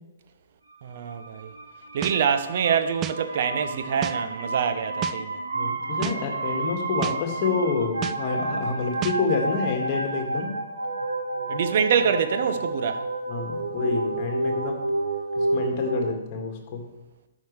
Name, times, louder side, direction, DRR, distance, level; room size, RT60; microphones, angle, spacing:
voice 1, 0.8-1.5 1.9-5.4 11.5-13.0, right 7 dB, 50° right, 0.8 m, -25 dB
sound 1, 0.9-16.0, right 2 dB, 75° right, 1.7 m, -30 dB
sound 2, 2.0-2.2 3.0-3.2 4.0-4.2 5.0-5.2 6.0-6.2 7.0-7.2 8.0-8.2 9.0-9.2, right 11 dB, 20° right, 0.3 m, -30 dB
voice 2, 5.5-10.5 13.3-14.8 15.4-16.9, left 4 dB, 35° left, 1.8 m, -28 dB
13.0 x 6.1 x 3.3 m
figure-of-eight pair, 120°, 0 cm